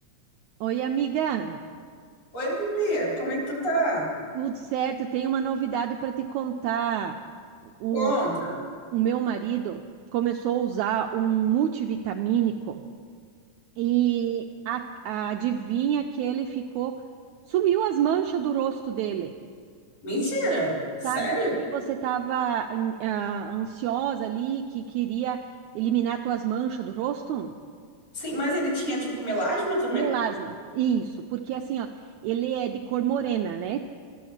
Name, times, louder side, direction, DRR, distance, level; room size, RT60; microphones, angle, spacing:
voice 1, 0.6-1.6 4.4-7.1 7.8-8.1 8.9-9.8 10.1-12.8 13.8-16.9 17.5-19.3 21.0-21.3 21.7-25.4 25.8-27.5 29.9-31.9 32.2-33.8, right 10 dB, 80° right, 4 dB, 1.7 m, -27 dB
voice 2, 2.3-4.1 7.9-8.6 20.0-21.5 28.1-30.1, right 1 dB, 45° left, -4 dB, 5.0 m, -27 dB
13.0 x 12.0 x 7.2 m, 2.1 s
omnidirectional pair, 3.8 m